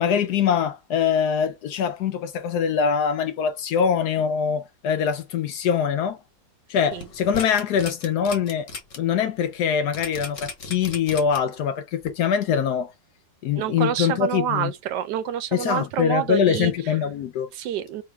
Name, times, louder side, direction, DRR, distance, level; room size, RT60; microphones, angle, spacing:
voice 1, 0.0-6.2 6.7-8.7 9.0-12.9 13.4-14.7 15.5-17.5, left 7 dB, 70° left, 1.0 m, -23 dB
sound 1, 6.9-9.0 9.4-9.5 9.9-11.6 12.0-12.1, left 4 dB, 50° left, 1.3 m, -35 dB
voice 2, 13.5-16.7 17.5-18.0, right 10 dB, 75° right, 1.2 m, -27 dB
3.5 x 3.1 x 4.4 m
omnidirectional pair, 2.0 m